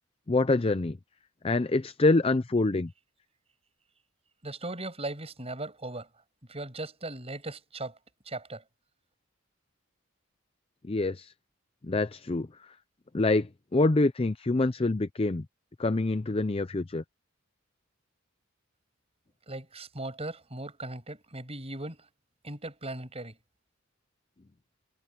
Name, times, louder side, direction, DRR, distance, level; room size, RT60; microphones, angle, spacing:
voice 1, 0.3-1.0 1.4-2.9 10.8-11.3 11.8-12.5 13.1-15.5 15.8-17.0, left 2 dB, 25° left, 0.5 m, -26 dB
voice 2, 4.4-6.1 6.5-8.0 8.3-8.6 19.5-22.1 22.4-23.4, right 2 dB, 30° right, 7.0 m, -38 dB
head